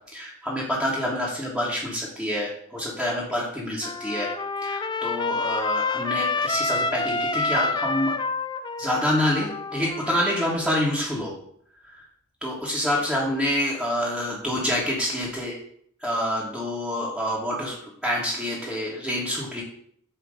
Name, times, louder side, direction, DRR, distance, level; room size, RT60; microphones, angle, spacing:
voice 1, 0.1-4.3 4.6-8.2 8.8-11.3 11.8-12.0 12.4-15.6 16.0-19.6, left 1 dB, ahead, -7 dB, 1.5 m, -27 dB
Trumpet, 3.8-10.5, left 3 dB, 20° left, 0.4 m, -28 dB
8.5 x 3.2 x 6.3 m, 0.65 s
head